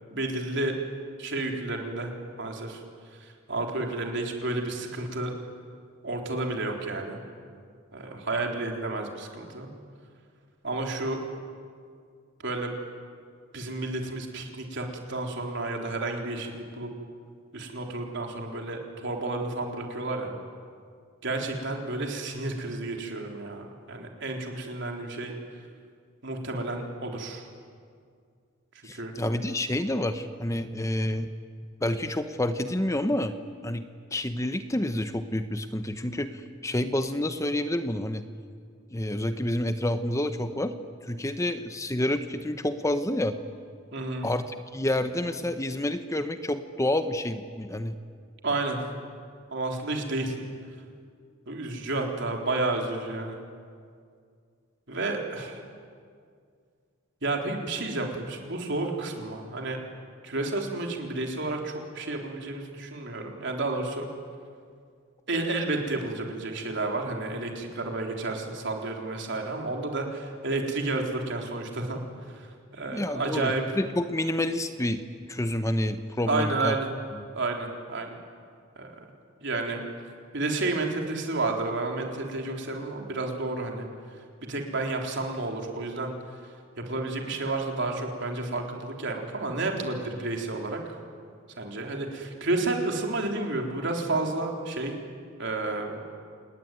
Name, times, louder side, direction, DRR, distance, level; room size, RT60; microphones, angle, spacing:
voice 1, 0.1-0.7 1.2-2.1 2.4-2.8 3.2-5.3 6.0-7.2 7.9-9.7 10.6-11.2 12.4-12.7 13.5-16.9 17.5-20.4 21.2-25.4 26.2-27.4 28.9-29.1 43.9-44.3 48.4-48.8 49.5-50.5 51.5-53.4 54.9-55.6 57.2-59.8 60.2-64.1 65.3-72.0 72.3-73.6 76.3-76.9 77.3-78.2 78.8-79.0 79.4-79.8 80.3-83.9 84.5-86.2 86.8-90.8 91.6-94.9 95.4-96.0, right 2 dB, 60° right, 2 dB, 3.8 m, -31 dB
voice 2, 28.8-31.3 31.8-33.4 33.6-33.9 34.1-38.2 38.9-40.7 41.0-43.4 44.2-48.0 72.9-76.7, left 1 dB, 15° left, 9 dB, 0.9 m, -28 dB
28.0 x 20.0 x 9.4 m, 2.2 s
head